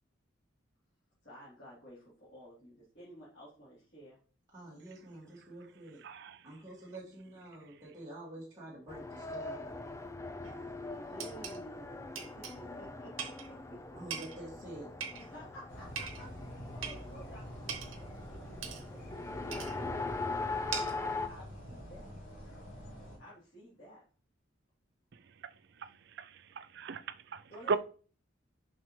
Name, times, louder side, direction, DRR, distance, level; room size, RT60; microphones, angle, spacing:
voice 1, 1.2-4.2 11.0-14.0 15.2-16.3 16.7-18.1 18.7-22.1 22.4-22.5 23.2-24.0 27.5-27.8, equal, 55° left, 3.1 m, -53 dB
voice 2, 4.5-6.0 6.4-9.8 13.9-14.9, right 1 dB, 15° right, 2.2 m, -48 dB
voice 3, 6.0-6.4 26.2-26.3 26.6-27.0 27.3-27.4 27.7-27.8, right 4 dB, 55° right, 0.4 m, -34 dB
Race car auto racing, 8.9-21.3, left 3 dB, 15° left, 0.5 m, -41 dB
sound 1, 10.4-10.5 11.2-11.6 12.1-12.6 13.2-13.5 14.1-14.4 15.0-15.4 16.0-16.2 16.8-17.0 17.7-18.0 18.6-18.8 19.5-19.8 20.7-21.1, right 6 dB, 80° right, 1.1 m, -40 dB
sound 2, 15.7-23.2, equal, 75° left, 3.2 m, -48 dB
7.4 x 5.6 x 3.2 m
head